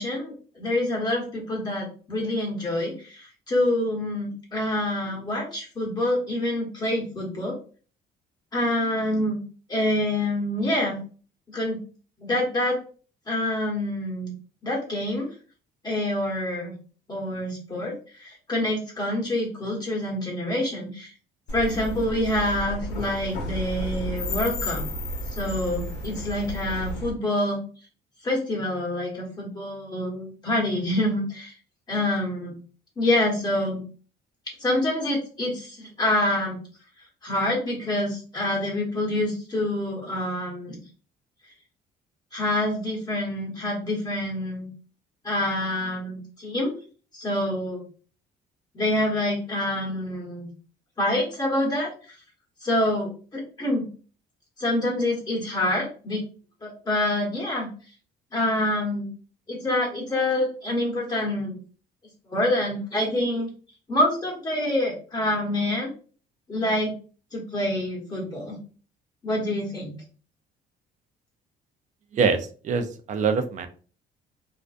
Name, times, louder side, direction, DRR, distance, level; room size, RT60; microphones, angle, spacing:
voice 1, 0.0-7.6 8.5-9.4 9.7-11.0 11.5-11.8 12.2-12.8 13.3-14.3 14.6-15.3 15.8-16.7 17.1-21.1 21.5-24.8 25.3-27.6 28.2-31.5 31.9-32.6 33.0-33.8 34.6-36.6 37.2-40.8 42.3-44.7 45.2-46.7 47.1-47.8 48.7-50.5 51.0-52.2 52.6-53.9 54.6-56.2 56.6-57.7 58.3-59.1 59.5-61.6 62.3-63.5 63.9-65.9 66.5-66.9 67.3-68.6 69.2-69.9, left 1 dB, 25° left, -3 dB, 1.1 m, -26 dB
City Sidewalk Noise with Drain Bump & Car Breaking Squeeks, 21.5-27.1, left 1 dB, 80° left, 0.9 m, -32 dB
voice 2, 72.1-73.7, right 5 dB, 45° right, 8 dB, 0.5 m, -24 dB
2.5 x 2.1 x 2.4 m, 0.38 s
cardioid pair, 110°, 17 cm